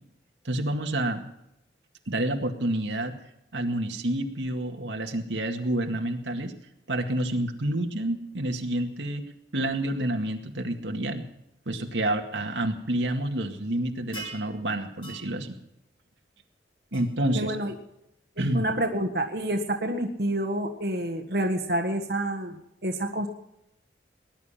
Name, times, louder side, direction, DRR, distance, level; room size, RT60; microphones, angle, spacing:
voice 1, 0.4-1.2 2.1-3.1 3.5-6.5 6.9-9.2 9.5-11.2 11.7-15.6 16.9-17.5 18.4-18.7, right 1 dB, 85° right, 4 dB, 2.1 m, -28 dB
sound 1, 14.1-14.5 15.0-15.3 16.9-17.0, right 3 dB, 25° left, 3.1 m, -39 dB
voice 2, 17.3-17.7 18.4-23.3, right 1 dB, 60° right, 4 dB, 1.5 m, -28 dB
20.0 x 11.0 x 5.8 m, 0.83 s
head